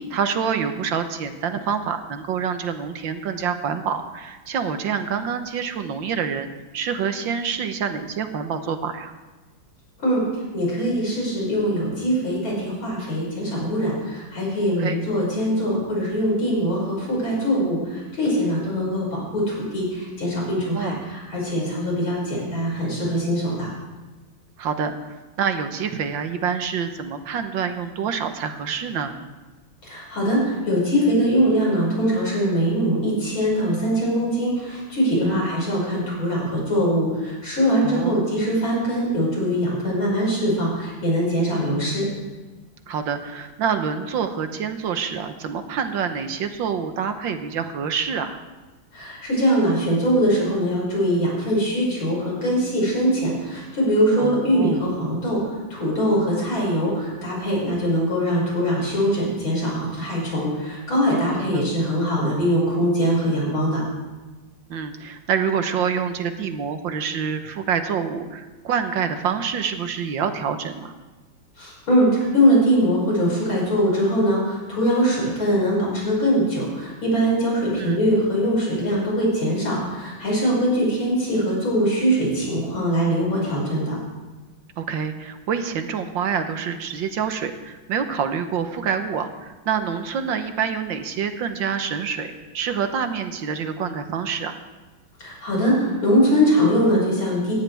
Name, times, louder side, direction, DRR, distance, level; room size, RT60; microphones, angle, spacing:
voice 1, 0.0-9.1 14.8-15.0 20.7-21.0 24.6-29.2 35.2-35.5 37.8-38.2 42.9-48.4 54.2-54.8 61.3-61.6 64.7-70.9 77.8-78.0 84.8-94.6, right 7 dB, 70° right, 8 dB, 1.7 m, -27 dB
voice 2, 10.5-23.7 29.8-42.1 48.9-55.4 55.7-63.8 71.6-84.0 95.2-97.5, equal, 85° left, -4 dB, 6.9 m, -22 dB
19.0 x 15.5 x 3.5 m, 1.2 s
omnidirectional pair, 2.2 m